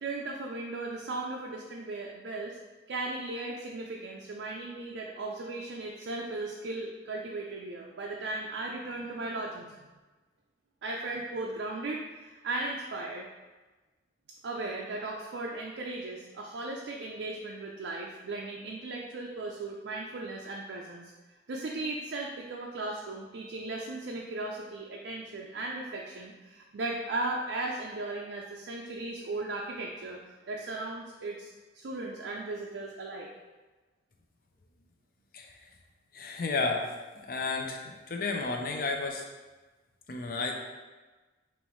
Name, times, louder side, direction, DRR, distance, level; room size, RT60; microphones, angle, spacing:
voice 1, 0.0-2.6 2.9-9.7 10.8-13.3 14.4-21.1 21.5-30.2 30.5-33.3, right 2 dB, 75° right, -1 dB, 0.4 m, -37 dB
voice 2, 36.1-36.9 37.2-39.2 40.1-40.5, left 3 dB, 50° left, 2 dB, 0.5 m, -32 dB
5.4 x 3.0 x 3.0 m, 1.2 s
head